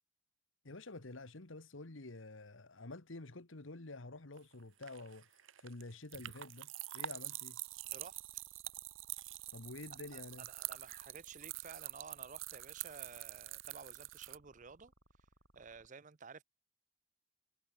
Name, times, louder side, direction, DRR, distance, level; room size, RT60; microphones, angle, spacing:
voice 1, 0.6-6.7 6.9-7.6 9.5-10.5, left 2 dB, 80° left, 1.6 m, -49 dB
sound 1, 4.4-14.4, right 15 dB, 85° right, 0.9 m, -46 dB
sound 2, 7.7-15.9, right 1 dB, 60° right, 6.4 m, -68 dB
voice 2, 7.9-8.4 10.1-10.2 10.5-14.9 15.5-16.4, right 5 dB, 40° right, 0.6 m, -53 dB
head